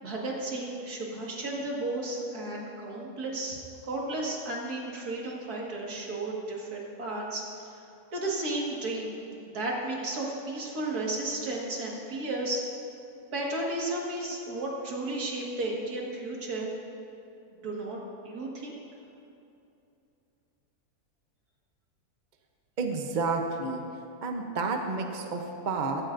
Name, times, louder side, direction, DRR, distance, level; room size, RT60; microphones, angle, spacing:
voice 1, 0.0-7.4 8.1-9.2 9.5-12.6 13.3-16.7 17.6-18.0 18.2-18.7, right 2 dB, 75° right, -3 dB, 2.3 m, -33 dB
voice 2, 22.8-23.8 24.2-26.0, right 3 dB, 40° right, 3 dB, 0.8 m, -30 dB
15.5 x 13.5 x 2.6 m, 2.8 s
omnidirectional pair, 1.6 m